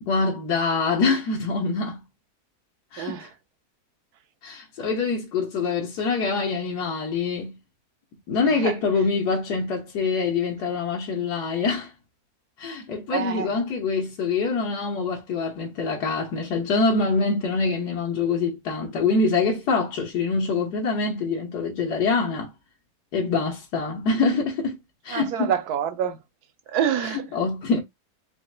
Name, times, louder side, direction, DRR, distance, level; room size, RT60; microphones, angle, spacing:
voice 1, 0.0-2.0 2.9-3.3 4.4-7.6 8.3-11.9 12.6-22.5 23.1-24.8 25.0-25.5 27.3-27.8, left 4 dB, 85° left, 1.7 m, -25 dB
voice 2, 3.0-3.3 8.4-8.8 13.1-13.5 25.1-26.2 26.7-27.4, right 9 dB, 75° right, 1.3 m, -27 dB
4.8 x 4.0 x 2.2 m
omnidirectional pair, 1.7 m